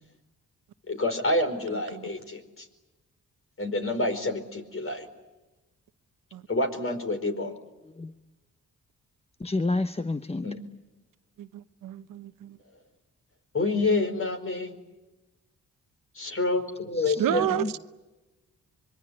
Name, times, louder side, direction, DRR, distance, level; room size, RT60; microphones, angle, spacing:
voice 1, 0.9-2.7 3.6-5.1 6.5-7.5 10.4-10.6 13.5-14.8 16.1-17.5, left 2 dB, 40° left, 4.7 m, -28 dB
voice 2, 9.4-10.5 17.0-17.7, left 2 dB, 20° left, 1.0 m, -30 dB
voice 3, 11.4-12.6 17.1-17.8, right 11 dB, 85° right, 1.1 m, -30 dB
25.5 x 22.5 x 9.9 m
cardioid pair, 65°, 32 cm